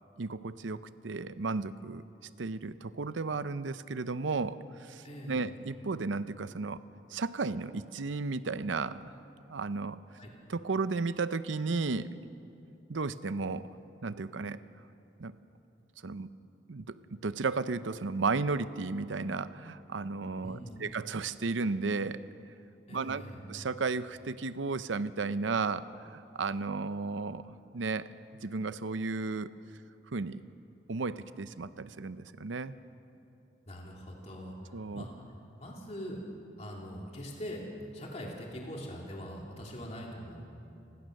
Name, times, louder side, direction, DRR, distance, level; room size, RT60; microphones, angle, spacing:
voice 1, 0.2-2.0 2.4-6.8 7.1-9.1 9.5-10.0 10.5-12.1 12.9-13.7 14.0-14.6 15.2-15.3 16.0-16.3 16.7-17.0 17.2-22.2 22.9-23.2 23.5-28.1 28.4-29.5 30.1-30.4 30.9-32.7 34.7-35.0, right 4 dB, 90° right, 14 dB, 0.7 m, -34 dB
voice 2, 5.0-5.5 10.2-10.3 20.4-20.8 22.9-23.4 33.7-35.1 35.6-36.2 36.6-37.6 37.9-40.4, equal, 35° left, -2 dB, 2.9 m, -42 dB
29.5 x 15.5 x 6.5 m, 2.8 s
head